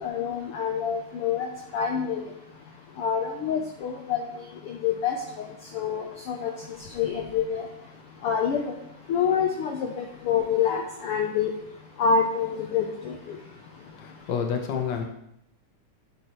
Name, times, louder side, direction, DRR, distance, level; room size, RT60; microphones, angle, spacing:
voice 1, 0.0-2.3 3.0-4.2 4.7-5.2 5.7-6.5 7.0-7.7 8.2-8.7 9.1-11.5 12.0-13.4, left 7 dB, 80° left, 2 dB, 1.3 m, -26 dB
voice 2, 14.0-15.0, left 7 dB, 60° left, 4 dB, 1.1 m, -29 dB
10.5 x 6.4 x 4.5 m, 0.78 s
omnidirectional pair, 3.6 m